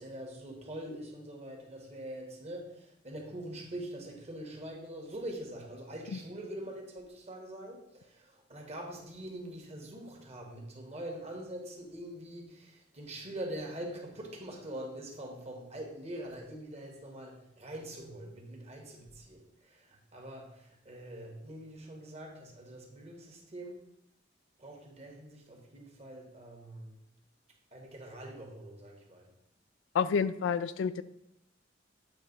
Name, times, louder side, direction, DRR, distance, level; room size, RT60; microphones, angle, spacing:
voice 1, 0.0-23.8 24.6-27.0 27.7-29.3, right 1 dB, 35° right, 1 dB, 1.4 m, -44 dB
voice 2, 29.9-31.0, left 6 dB, 80° left, 14 dB, 0.3 m, -29 dB
8.4 x 3.4 x 5.3 m, 0.80 s
head